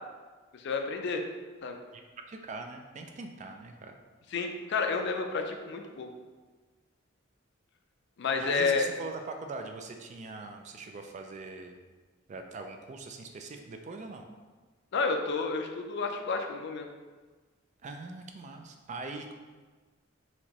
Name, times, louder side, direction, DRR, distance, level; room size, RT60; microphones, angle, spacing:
voice 1, 0.5-1.2 1.6-1.8 4.3-6.1 8.2-8.9 14.9-16.9, left 4 dB, 55° left, 4 dB, 0.4 m, -30 dB
voice 2, 2.3-3.9 8.4-11.8 12.3-14.3 17.8-19.3, right 3 dB, 35° right, 5 dB, 0.3 m, -42 dB
4.3 x 2.9 x 2.9 m, 1.4 s
head